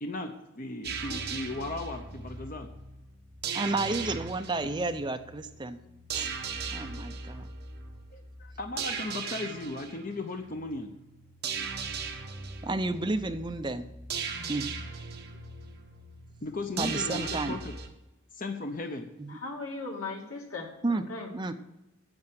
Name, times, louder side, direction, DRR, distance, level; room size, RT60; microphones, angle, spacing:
voice 1, 0.0-2.7 8.1-10.9 16.4-17.7 18.3-19.1, left 2 dB, 40° left, 5 dB, 0.8 m, -36 dB
sound 1, 0.8-17.9, right 5 dB, 50° right, 1.3 m, -38 dB
voice 2, 3.5-5.8 6.1-6.3 6.7-7.5 12.6-13.9 14.5-14.7 16.8-17.6 19.2-19.3 20.8-21.0 21.3-21.5, right 2 dB, 20° right, 8 dB, 0.5 m, -31 dB
voice 3, 19.3-21.4, left 3 dB, 85° left, 0 dB, 2.5 m, -38 dB
9.7 x 7.7 x 7.5 m, 0.95 s
head